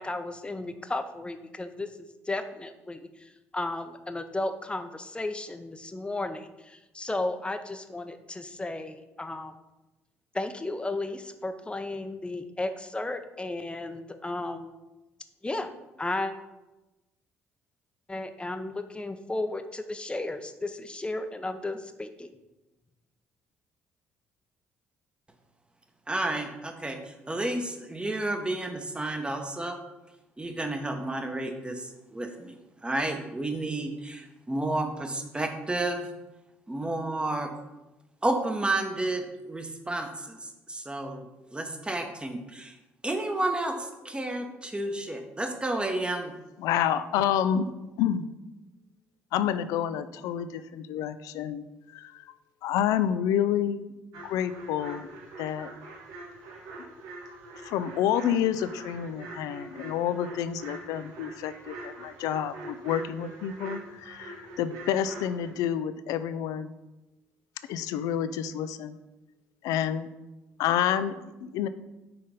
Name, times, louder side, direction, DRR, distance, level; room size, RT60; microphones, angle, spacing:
voice 1, 0.0-1.9 2.3-9.5 10.3-14.7 15.4-15.7 16.0-16.3 18.1-22.3, left 2 dB, 15° left, 8 dB, 0.7 m, -34 dB
voice 2, 26.1-29.8 30.4-32.5 32.8-36.1 36.7-37.5 38.2-41.2 41.5-42.8 43.0-46.3, right 2 dB, 15° right, 5 dB, 1.1 m, -31 dB
voice 3, 46.6-47.7 48.0-48.3 49.3-51.6 51.9-52.1 52.6-53.8 54.2-55.1 55.4-55.7 57.6-66.7 67.7-69.0 69.6-70.1 70.6-71.7, left 9 dB, 75° left, 13 dB, 0.4 m, -28 dB
sound 1, 54.1-65.5, right 2 dB, 80° right, 1.1 m, -44 dB
5.8 x 4.0 x 5.1 m, 1.0 s
hypercardioid pair, 55°, 6 cm